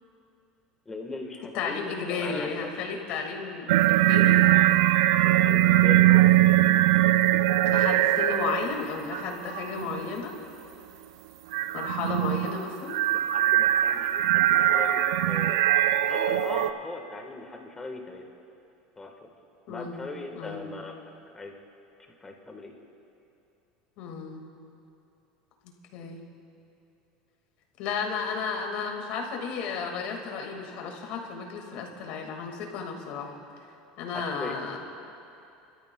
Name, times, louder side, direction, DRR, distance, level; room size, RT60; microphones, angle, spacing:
voice 1, 0.8-3.2 5.2-6.3 12.0-12.4 13.1-15.7 16.1-18.3 19.0-19.1 19.7-20.9 21.3-21.5 22.2-22.7 34.1-34.5, left 2 dB, 15° left, 2 dB, 1.4 m, -39 dB
voice 2, 1.5-4.4 7.6-10.3 11.7-13.0 19.7-20.1 20.4-20.7 24.0-24.4 25.9-26.2 27.8-33.4 34.0-34.8, left 5 dB, 65° left, 1 dB, 1.9 m, -33 dB
sound 1, 3.7-8.8 9.1-10.1 11.5-16.7, right 14 dB, 90° right, 0.4 m, -21 dB
26.0 x 12.5 x 2.3 m, 2.8 s
supercardioid pair, 120°, 3 cm